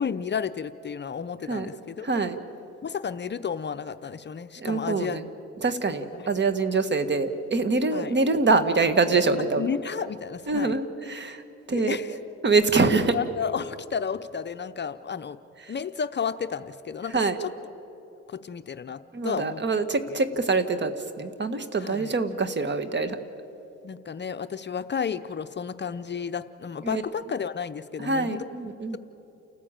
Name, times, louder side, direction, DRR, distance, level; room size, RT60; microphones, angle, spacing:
voice 1, 0.0-2.2 2.8-5.2 6.1-6.3 7.9-8.2 9.5-10.7 11.7-12.2 13.1-15.4 15.7-17.5 18.3-19.6 20.1-20.2 21.8-22.1 23.8-28.5, left 6 dB, 35° left, 10 dB, 0.7 m, -32 dB
voice 2, 2.0-2.4 4.6-5.2 5.6-9.6 10.5-11.4 11.7-12.0 12.4-13.1 17.1-17.4 19.1-20.9 21.2-23.2 26.8-27.0 28.0-29.0, right 3 dB, 35° right, 10 dB, 1.5 m, -24 dB
29.0 x 14.0 x 8.8 m, 2.9 s
cardioid pair, 90°, 30 cm